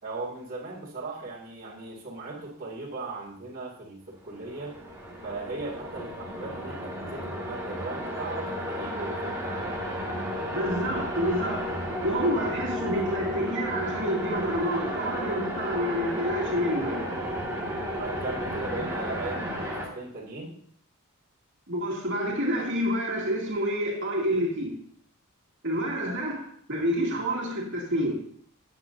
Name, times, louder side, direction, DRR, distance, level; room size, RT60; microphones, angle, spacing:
voice 1, 0.0-4.7 5.2-9.8 18.0-20.5, right 3 dB, 40° right, 2.2 m, -38 dB
sound 1, 4.3-19.9, equal, 15° right, 1.9 m, -33 dB
voice 2, 10.5-11.8 12.0-17.1 21.7-24.8 25.6-28.2, equal, 55° right, 2.4 m, -28 dB
13.5 x 8.3 x 2.6 m
head